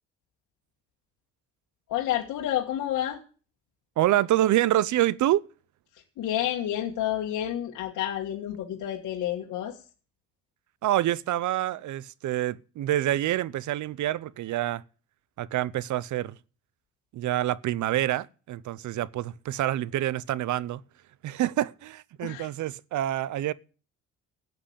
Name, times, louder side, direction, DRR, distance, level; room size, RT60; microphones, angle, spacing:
voice 1, 1.9-3.2 6.2-9.8 22.2-22.5, left 11 dB, 85° left, 1.8 m, -29 dB
voice 2, 4.0-5.4 10.8-14.8 15.4-16.3 17.1-20.8 21.2-23.5, right 13 dB, 75° right, 0.7 m, -27 dB
13.5 x 8.1 x 8.6 m
cardioid pair, 90°, 30 cm